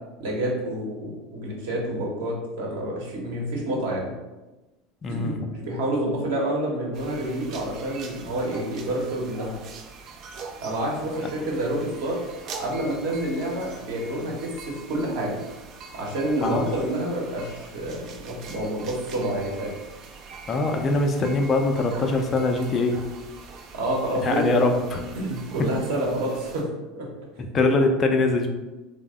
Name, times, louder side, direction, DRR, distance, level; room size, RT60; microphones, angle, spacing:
voice 1, 0.2-4.1 5.1-9.6 10.6-12.2 12.6-15.4 15.9-19.7 23.7-24.5 25.1-26.7 26.9-27.1 27.3-27.4, right 1 dB, 65° right, -2 dB, 0.9 m, -28 dB
voice 2, 5.0-5.5 16.4-16.6 20.5-23.0 24.2-25.0 27.5-28.5, left 2 dB, 30° left, 4 dB, 0.4 m, -22 dB
sound 1, 6.9-26.6, right 4 dB, 50° right, 0.4 m, -43 dB
3.2 x 2.0 x 3.6 m, 1.1 s
figure-of-eight pair, 75°, 0 cm